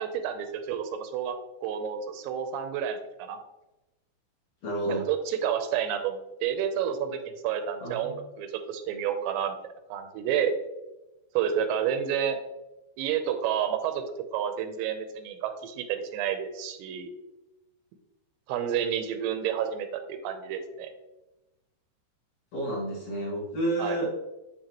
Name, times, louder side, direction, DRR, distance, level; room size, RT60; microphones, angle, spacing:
voice 1, 0.0-1.4 1.6-3.4 4.9-7.2 7.4-9.6 9.9-10.5 11.3-12.4 13.0-14.0 14.3-17.1 18.5-20.9 23.8-24.0, right 9 dB, 85° right, 7 dB, 2.9 m, -30 dB
voice 2, 4.6-5.0 7.8-8.1 22.5-24.1, right 1 dB, 50° left, -7 dB, 2.3 m, -30 dB
10.5 x 3.5 x 2.9 m, 0.98 s
omnidirectional pair, 5.1 m